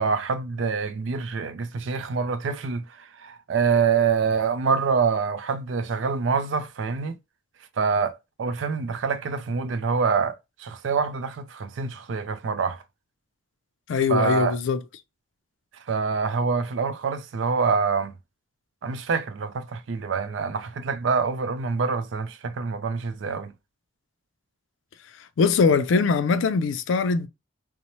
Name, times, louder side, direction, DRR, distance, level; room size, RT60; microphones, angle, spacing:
voice 1, 0.0-7.2 7.8-12.8 14.1-14.6 15.9-18.1 18.8-23.5, right 5 dB, 75° right, 0.4 m, -26 dB
voice 2, 13.9-14.8 25.4-27.3, left 5 dB, 75° left, 0.4 m, -21 dB
3.0 x 2.0 x 2.6 m
head